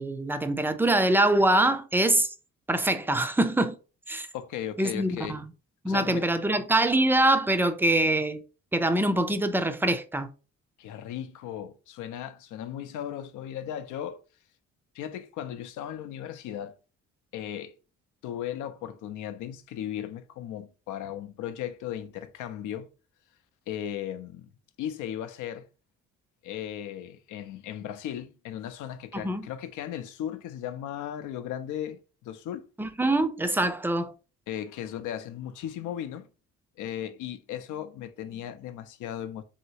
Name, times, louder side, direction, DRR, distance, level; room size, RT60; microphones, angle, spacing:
voice 1, 0.0-2.3 2.7-3.8 4.1-4.3 4.8-5.5 5.8-8.4 8.7-10.3 29.1-29.4 32.8-34.1, right 1 dB, 5° right, 0.3 m, -24 dB
voice 2, 4.3-5.4 5.9-6.3 10.8-14.2 14.9-16.8 17.3-17.7 18.2-22.9 23.7-24.5 24.8-25.7 26.4-32.7 34.5-36.3 36.8-39.4, left 10 dB, 80° left, 0.5 m, -36 dB
3.1 x 2.8 x 2.7 m
cardioid pair, 90°, 30 cm